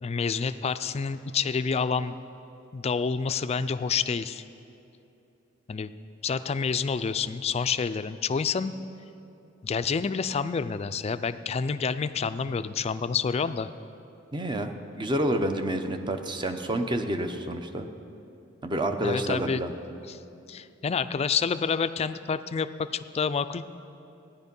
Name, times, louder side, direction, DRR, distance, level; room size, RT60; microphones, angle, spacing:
voice 1, 0.0-2.1 2.7-4.4 5.7-5.9 6.2-8.7 9.6-13.7 19.0-19.6 20.1-20.2 20.5-23.6, left 5 dB, 35° left, 12 dB, 0.3 m, -28 dB
voice 2, 14.3-17.9 18.6-19.7, right 1 dB, 25° right, 7 dB, 0.7 m, -29 dB
15.0 x 10.0 x 5.4 m, 2.8 s
head